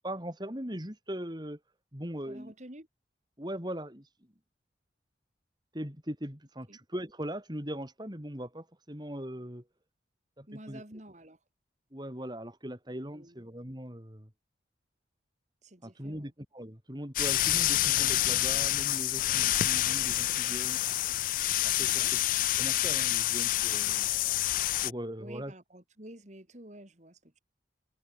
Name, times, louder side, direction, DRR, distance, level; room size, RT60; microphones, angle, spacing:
voice 1, 0.0-1.6 1.9-2.5 3.4-4.1 5.7-9.6 10.4-10.8 11.9-14.3 15.8-20.8 21.6-22.2 22.6-24.1 24.8-25.5, equal, 25° right, 5.1 m, -40 dB
voice 2, 2.2-2.9 6.7-6.8 10.5-11.4 13.1-13.5 15.6-16.3 21.8-22.1 25.2-27.4, right 1 dB, 40° right, 3.3 m, -49 dB
sound 1, 17.2-24.9, left 15 dB, 50° left, 0.3 m, -28 dB
head